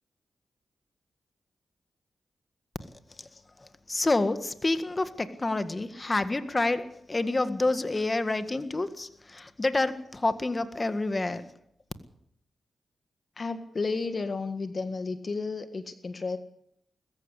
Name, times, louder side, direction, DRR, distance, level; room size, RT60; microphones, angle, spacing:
voice 1, 3.6-11.5, left 2 dB, 30° left, 11 dB, 1.8 m, -28 dB
voice 2, 13.4-16.4, left 4 dB, 45° left, 10 dB, 1.7 m, -32 dB
21.0 x 14.5 x 8.4 m, 0.71 s
cardioid pair, 55°, 0 cm